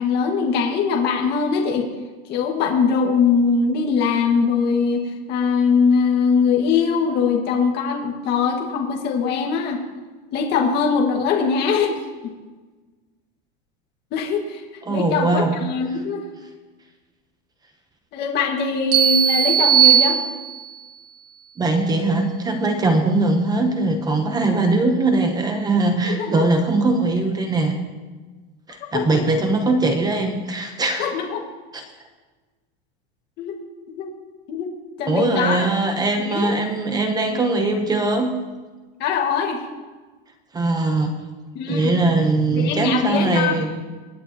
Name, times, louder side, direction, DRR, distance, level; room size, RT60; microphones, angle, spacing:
voice 1, 0.0-1.9 2.3-9.8 10.3-12.3 14.1-14.6 14.9-16.3 18.1-20.2 26.0-26.5 28.9-29.3 31.0-31.4 33.4-33.6 34.0-34.1 34.5-34.7 35.0-35.7 36.2-36.6 39.0-39.6 41.6-41.9 42.5-43.6, left 5 dB, 35° left, 0 dB, 1.7 m, -21 dB
voice 2, 14.8-15.5 21.6-27.8 28.7-31.1 31.7-31.8 35.1-38.4 40.5-41.1 41.7-43.8, right 2 dB, 15° right, 5 dB, 0.8 m, -21 dB
sound 1, 18.9-20.8, right 9 dB, 55° right, 2.4 m, -17 dB
25.5 x 9.7 x 2.9 m, 1.3 s
supercardioid pair, 165°, 29 cm